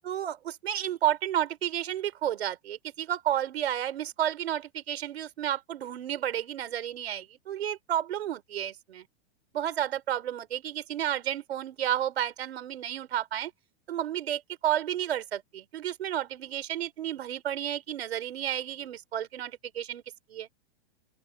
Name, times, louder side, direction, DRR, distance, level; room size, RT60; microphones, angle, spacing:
voice 1, 0.0-9.1 9.5-13.5 13.9-20.0 20.3-20.5, right 11 dB, 80° right, 4.4 m, -31 dB
open air
hypercardioid pair, 120°, 31 cm